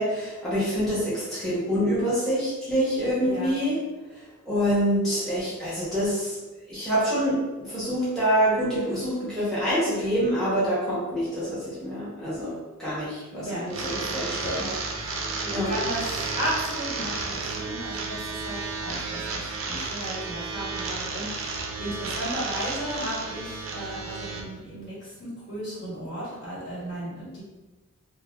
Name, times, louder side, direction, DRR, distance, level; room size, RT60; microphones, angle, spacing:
voice 1, 0.0-3.8 4.4-6.4 6.7-12.5 12.8-14.7 15.0-15.2 15.5-15.7, equal, ahead, -11 dB, 0.9 m, -26 dB
voice 2, 3.2-3.6 13.4-13.8 15.4-16.0 16.4-27.4, equal, 55° left, -8 dB, 1.4 m, -34 dB
sound 1, 13.7-24.4, right 4 dB, 75° right, 0.4 m, -32 dB
2.5 x 2.1 x 3.3 m, 1.2 s
head